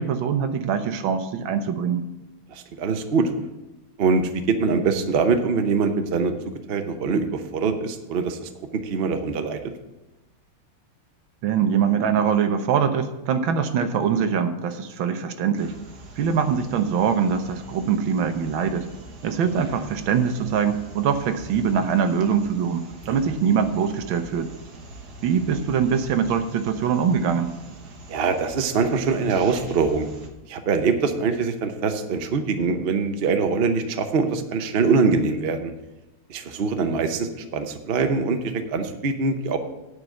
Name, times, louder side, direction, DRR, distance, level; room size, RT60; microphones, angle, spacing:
voice 1, 0.0-2.0 11.4-15.7 16.2-18.9 19.2-24.5 25.2-27.5, right 7 dB, 70° right, 8 dB, 1.5 m, -23 dB
voice 2, 2.5-3.3 4.0-6.3 6.7-8.5 8.8-9.6 23.1-23.2 28.1-30.1 30.5-35.7 36.3-39.6, right 4 dB, 85° right, 7 dB, 0.5 m, -23 dB
sound 1, 15.5-30.3, right 3 dB, 50° right, 1.6 m, -43 dB
9.5 x 5.2 x 8.0 m, 1.0 s
omnidirectional pair, 2.3 m